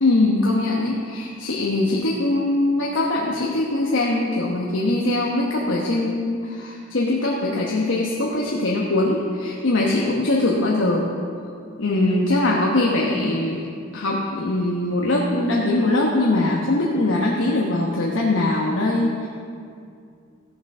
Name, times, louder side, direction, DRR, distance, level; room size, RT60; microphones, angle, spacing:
voice 1, 0.0-11.1 11.8-13.6 13.9-19.3, left 2 dB, 75° left, -3 dB, 1.1 m, -22 dB
14.5 x 7.1 x 5.5 m, 2.3 s
head